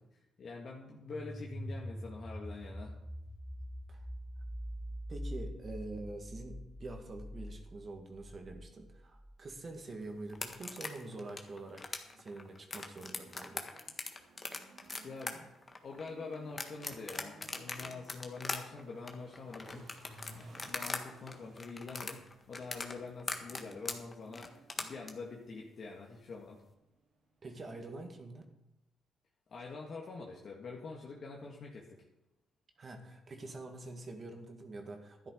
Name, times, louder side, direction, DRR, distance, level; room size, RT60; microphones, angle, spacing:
voice 1, 0.4-2.9 15.0-15.6 15.8-26.6 29.5-31.9, left 4 dB, 50° left, -1 dB, 1.7 m, -46 dB
sound 1, 1.1-9.8, equal, ahead, 0.6 m, -44 dB
voice 2, 5.1-13.7 27.4-28.4 32.8-35.3, right 2 dB, 40° right, 3 dB, 2.1 m, -46 dB
sound 2, 10.3-21.0 21.3-25.1, left 3 dB, 30° left, 1.6 m, -40 dB
sound 3, 11.9-27.8, right 2 dB, 65° right, 3.4 m, -59 dB
12.0 x 10.5 x 5.0 m, 0.93 s
cardioid pair, 90°, 0 cm